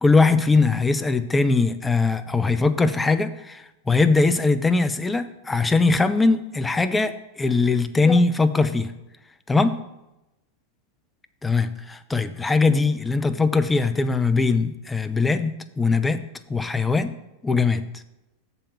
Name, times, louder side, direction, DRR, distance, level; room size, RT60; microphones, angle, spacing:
voice 1, 0.0-8.9 9.5-9.8 11.4-16.2 16.5-17.1 17.4-17.8, left 3 dB, 10° left, 10 dB, 0.6 m, -21 dB
6.9 x 5.4 x 5.9 m, 0.93 s
figure-of-eight pair, 90°, 0 cm